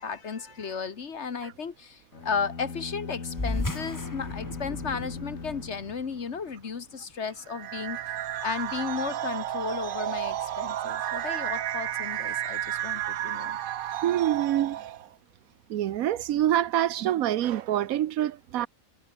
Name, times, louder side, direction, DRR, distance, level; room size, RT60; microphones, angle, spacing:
voice 1, 0.0-8.0 8.4-13.6, left 5 dB, 55° left, 1.7 m, -34 dB
sound 1, 2.1-6.5, left 4 dB, 80° left, 3.0 m, -39 dB
sound 2, 3.3-8.2, left 2 dB, 15° left, 1.2 m, -37 dB
sound 3, 7.5-15.1, right 11 dB, 65° right, 0.5 m, -32 dB
voice 2, 12.6-13.3 14.0-14.8 15.7-18.7, right 12 dB, 90° right, 1.2 m, -26 dB
omnidirectional pair, 1.4 m